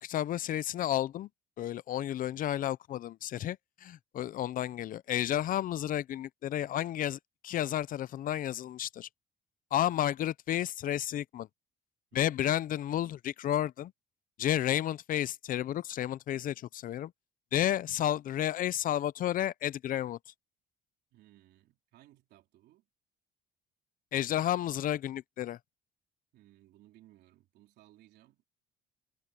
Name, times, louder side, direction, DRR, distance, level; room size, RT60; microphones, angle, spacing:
voice 1, 0.0-1.3 1.6-9.1 9.7-11.5 12.1-13.9 14.4-17.1 17.5-20.2 24.1-25.6, left 12 dB, 55° left, 0.6 m, -32 dB
voice 2, 21.1-22.9 26.3-28.4, right 15 dB, 80° right, 3.7 m, -61 dB
cardioid pair, 110°, 17 cm